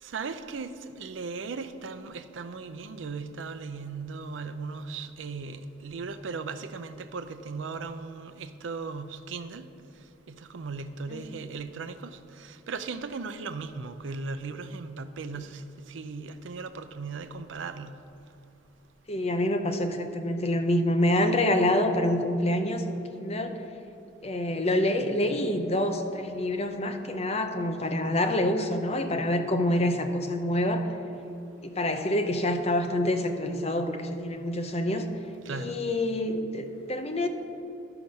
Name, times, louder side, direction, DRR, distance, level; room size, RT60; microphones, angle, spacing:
voice 1, 0.0-9.7 10.3-18.0 35.4-35.8, right 4 dB, 85° right, 0.5 m, -37 dB
voice 2, 19.1-23.6 24.2-30.9 31.6-35.0 35.5-37.3, left 1 dB, 35° left, 0.6 m, -27 dB
11.5 x 5.9 x 5.3 m
head